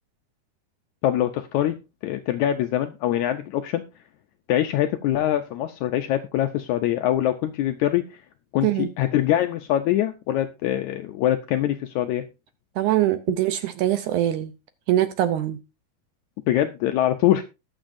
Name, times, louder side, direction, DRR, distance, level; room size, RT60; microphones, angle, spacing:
voice 1, 1.0-1.8 2.0-3.8 4.5-8.2 8.5-12.3 16.5-17.4, left 12 dB, 85° left, 1.6 m, -23 dB
voice 2, 12.8-14.5 14.9-15.6, right 13 dB, 80° right, 1.8 m, -23 dB
20.5 x 7.3 x 2.6 m
omnidirectional pair, 4.2 m